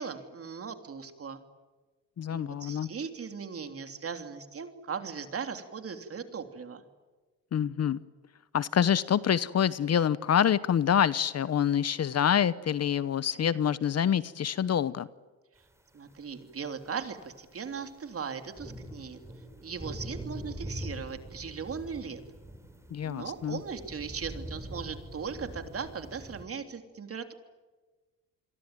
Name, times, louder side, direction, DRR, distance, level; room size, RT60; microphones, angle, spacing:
voice 1, 0.0-1.4 2.3-6.8 15.9-19.2 19.6-22.2 23.0-27.3, right 6 dB, 40° right, 7 dB, 3.3 m, -38 dB
voice 2, 2.2-2.9 7.5-8.0 8.5-15.1 22.9-23.6, left 9 dB, 45° left, 17 dB, 1.0 m, -26 dB
sound 1, 16.1-16.2 16.7-26.4, equal, 10° right, 4.4 m, -43 dB
28.5 x 22.5 x 9.1 m, 1.3 s
cardioid pair, 100°, 35 cm